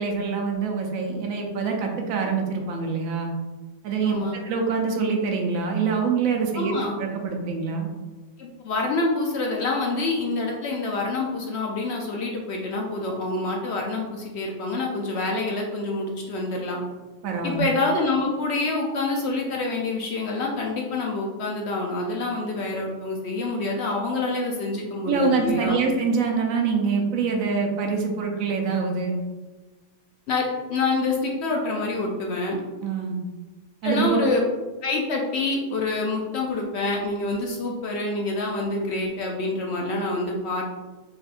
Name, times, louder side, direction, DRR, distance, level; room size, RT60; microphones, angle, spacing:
voice 1, 0.0-3.3 3.8-7.9 17.2-17.6 25.0-29.2 32.8-33.2 33.8-34.3, right 5 dB, 75° right, 2 dB, 1.0 m, -25 dB
voice 2, 4.0-4.4 6.5-6.9 8.4-16.8 17.4-25.8 30.3-32.6 33.8-34.4 34.8-40.6, left 2 dB, 65° left, 0 dB, 0.7 m, -27 dB
4.1 x 3.4 x 2.5 m, 1.2 s
omnidirectional pair, 1.5 m